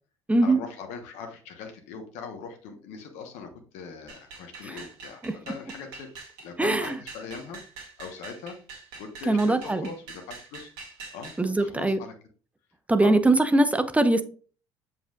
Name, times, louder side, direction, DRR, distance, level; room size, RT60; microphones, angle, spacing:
voice 1, 0.4-6.1 6.4-7.6 8.0-8.6 9.0-10.7 11.1-12.1 13.0-13.2, left 5 dB, 70° left, 4 dB, 1.2 m, -40 dB
sound 1, 4.1-11.4, right 4 dB, 75° right, 2.2 m, -45 dB
voice 2, 6.6-6.9 9.3-9.9 11.4-12.0 12.9-14.2, right 2 dB, 10° right, 10 dB, 0.9 m, -22 dB
7.2 x 5.6 x 2.4 m, 0.39 s
hypercardioid pair, 60°, 13 cm